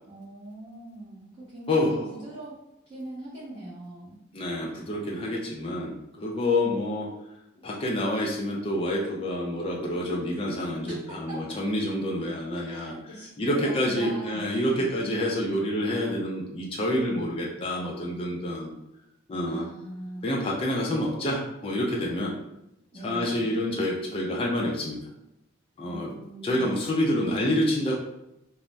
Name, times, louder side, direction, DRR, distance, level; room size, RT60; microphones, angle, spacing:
voice 1, 0.1-2.5 2.9-4.2 11.1-11.6 12.5-13.7 14.0-14.9 19.5-20.3 22.9-23.5 25.8-26.9, right 1 dB, 20° right, -12 dB, 0.9 m, -41 dB
voice 2, 1.7-2.1 4.3-7.1 7.6-12.9 13.4-18.7 19.3-19.7 20.2-22.3 23.0-25.1 25.8-26.1 26.4-27.9, left 1 dB, 25° left, -2 dB, 0.4 m, -28 dB
2.5 x 2.0 x 3.2 m, 0.87 s
head